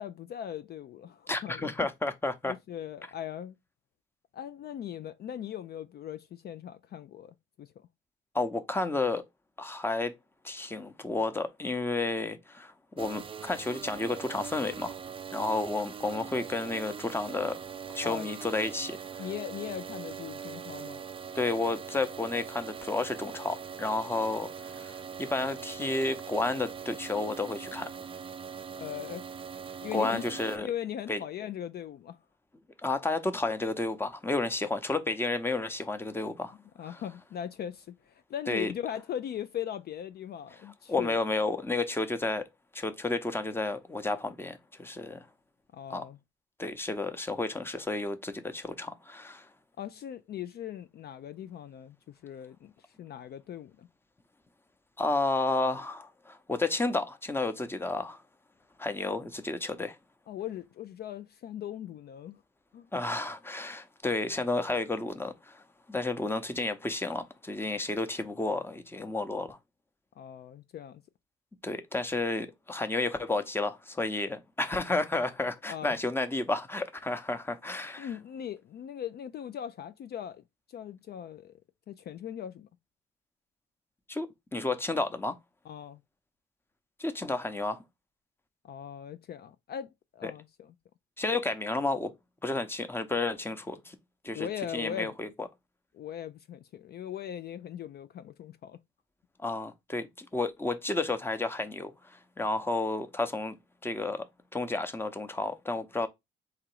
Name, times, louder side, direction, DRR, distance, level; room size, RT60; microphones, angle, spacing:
voice 1, 0.0-1.7 2.5-3.6 4.3-7.9 18.0-18.3 19.2-21.0 28.8-29.3 29.8-30.2 30.6-32.2 36.8-41.2 45.7-46.2 49.8-53.9 60.3-62.4 62.7-62.9 70.2-71.0 75.7-76.0 78.0-81.6 81.9-82.7 85.6-86.0 88.6-90.7 94.3-95.1 95.9-98.8, left 10 dB, 55° left, 0.4 m, -39 dB
voice 2, 1.3-2.5 8.3-9.2 9.6-10.1 10.4-15.0 15.3-17.6 17.9-19.0 21.3-27.9 29.9-30.7 31.1-31.2 32.8-36.6 36.9-37.0 38.5-38.7 40.9-42.5 42.7-45.3 45.9-46.0 46.6-49.5 55.0-58.2 58.8-60.0 62.9-65.6 65.9-69.6 71.6-78.1 84.1-85.3 87.0-87.8 90.2-90.3 91.2-92.1 92.4-94.0 94.2-94.5 94.7-95.5 99.4-103.6 103.8-104.2 104.5-106.1, left 2 dB, 10° left, 0.7 m, -31 dB
sound 1, 13.0-30.6, right 7 dB, 25° right, 0.4 m, -42 dB
3.6 x 3.0 x 4.6 m
cardioid pair, 90°, 20 cm